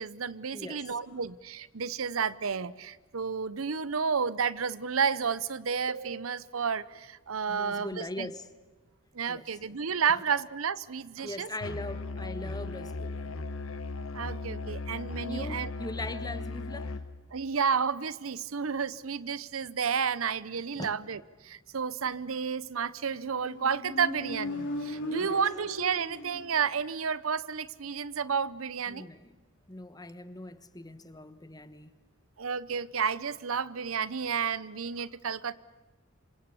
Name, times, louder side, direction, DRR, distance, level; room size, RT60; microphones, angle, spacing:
voice 1, 0.0-8.3 9.1-11.5 14.1-15.7 17.3-29.1 32.4-35.5, right 6 dB, 90° right, 0.8 m, -31 dB
voice 2, 0.5-0.8 7.5-8.5 9.3-9.5 11.2-13.4 15.2-17.0 20.8-21.0 25.2-25.4 28.9-29.3 29.7-31.9, left 1 dB, 20° left, 1.3 m, -40 dB
Musical instrument, 11.6-17.1, left 3 dB, 90° left, 1.3 m, -37 dB
Motorcycle, 23.1-26.8, left 1 dB, 65° left, 3.3 m, -38 dB
27.5 x 25.0 x 7.1 m
head